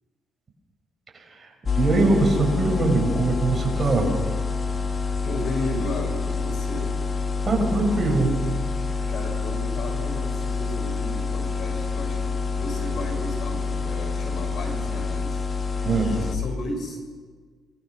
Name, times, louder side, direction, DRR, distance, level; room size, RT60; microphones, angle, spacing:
sound 1, 1.7-16.4, left 4 dB, 40° left, 2.4 m, -27 dB
voice 1, 1.8-4.1 7.5-8.5 15.8-16.1, right 3 dB, 35° right, 2 dB, 6.0 m, -22 dB
voice 2, 5.2-6.9 9.1-17.0, left 1 dB, 65° left, 4 dB, 6.4 m, -34 dB
26.0 x 20.5 x 6.4 m, 1.5 s
cardioid pair, 95°, 0 cm